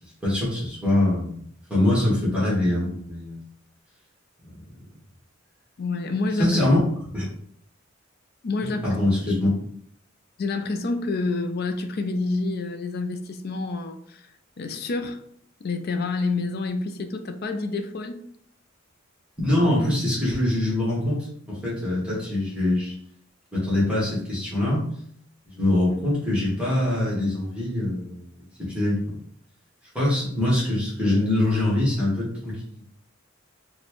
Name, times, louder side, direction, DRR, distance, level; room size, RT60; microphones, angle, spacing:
voice 1, 0.2-1.4 1.7-3.4 6.4-6.8 7.1-7.2 8.6-9.5 19.4-22.9 23.5-24.9 25.5-28.3 28.6-29.2 29.9-32.6, left 1 dB, 5° right, -7 dB, 1.3 m, -23 dB
voice 2, 5.8-6.6 8.4-8.8 9.3-9.4 10.4-14.3 14.6-15.2 15.6-18.2, left 3 dB, 50° left, 7 dB, 0.4 m, -28 dB
4.1 x 2.2 x 3.0 m, 0.65 s
head